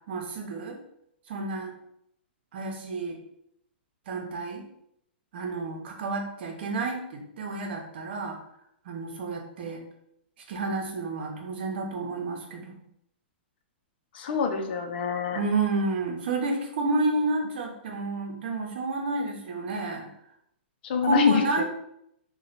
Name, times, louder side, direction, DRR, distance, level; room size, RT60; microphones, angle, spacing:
voice 1, 0.1-0.8 1.3-1.8 2.5-3.2 4.1-4.6 5.3-8.4 8.8-9.8 10.5-12.8 15.3-20.1 21.0-21.6, right 2 dB, 65° right, 2 dB, 0.9 m, -30 dB
voice 2, 14.1-15.4 20.8-21.6, left 6 dB, 60° left, 5 dB, 0.6 m, -26 dB
3.1 x 2.3 x 4.0 m, 0.74 s
hypercardioid pair, 135°, 6 cm